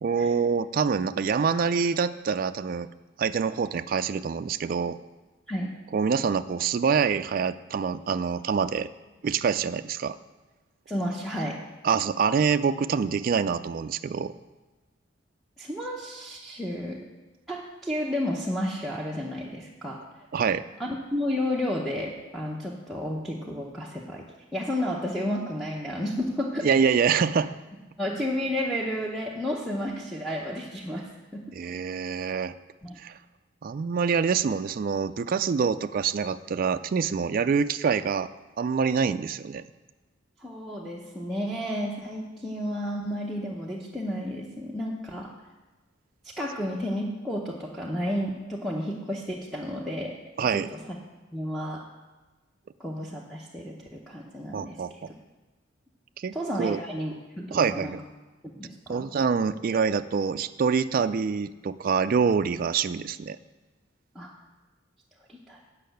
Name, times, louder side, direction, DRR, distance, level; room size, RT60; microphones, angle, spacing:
voice 1, 0.0-2.9 3.2-5.0 5.9-8.9 9.2-10.2 11.8-14.3 20.3-20.6 26.6-27.5 31.5-32.5 33.0-33.2 33.6-38.3 38.6-39.6 50.4-50.7 54.5-55.1 56.2-56.8 57.5-58.0 58.9-63.4, right 6 dB, 45° right, 11 dB, 0.3 m, -26 dB
voice 2, 10.9-11.6 15.6-17.0 17.5-20.0 20.8-24.3 24.5-26.7 27.0-27.2 28.0-31.6 32.8-33.0 40.4-45.3 46.2-51.0 51.3-51.8 52.8-55.1 56.3-57.9 58.4-59.1 64.1-64.3 65.3-65.6, equal, ahead, -3 dB, 0.8 m, -32 dB
8.5 x 5.5 x 7.8 m, 1.2 s
head